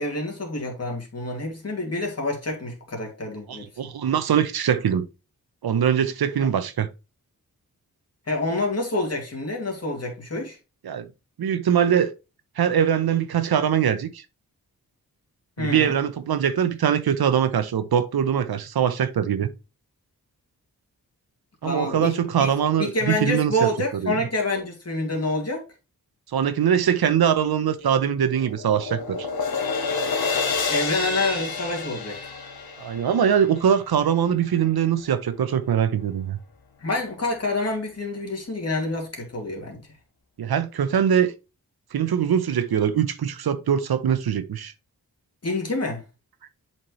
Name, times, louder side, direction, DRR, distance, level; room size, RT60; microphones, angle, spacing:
voice 1, 0.0-3.7 8.3-10.6 15.6-15.9 21.6-22.5 22.8-25.6 30.7-32.2 36.8-40.0 45.4-46.0, left 2 dB, 45° left, 2.4 m, -27 dB
voice 2, 3.5-5.1 5.6-6.9 10.8-11.1 11.4-12.1 12.6-14.2 15.6-19.5 21.6-24.2 26.3-29.3 32.8-36.4 40.4-41.3 41.9-44.7, right 8 dB, 90° right, 0.8 m, -22 dB
sound 1, 27.8-34.1, left 4 dB, 85° left, 1.2 m, -29 dB
7.6 x 4.4 x 3.1 m
wide cardioid pair, 75°, 36 cm